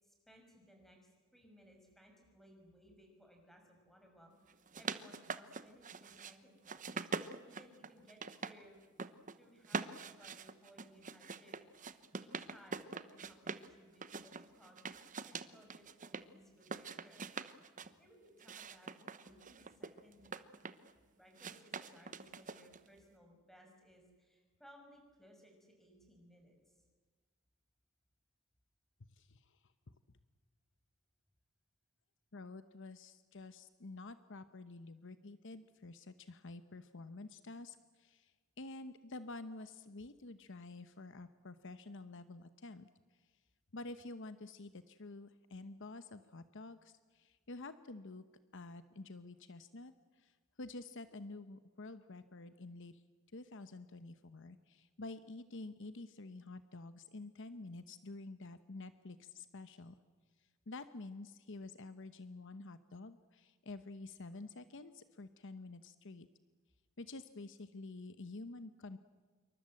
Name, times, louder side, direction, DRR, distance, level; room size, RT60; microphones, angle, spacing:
voice 1, 0.0-6.9 7.4-8.8 9.4-11.9 12.2-14.8 15.2-17.3 18.0-20.3 21.1-26.8, equal, ahead, 2 dB, 6.2 m, -62 dB
sound 1, 4.5-6.3 6.6-8.5 8.8-9.3 9.6-13.7 14.0-16.2 16.6-17.9 18.4-20.9 21.4-22.9, right 4 dB, 35° right, 1.0 m, -44 dB
voice 2, 29.2-29.6 29.9-30.0 32.3-42.9 43.7-48.2 48.5-53.0 53.3-59.9 60.7-66.3 67.0-69.0, left 2 dB, 60° left, 12 dB, 0.9 m, -49 dB
27.5 x 24.0 x 7.8 m, 1.4 s
head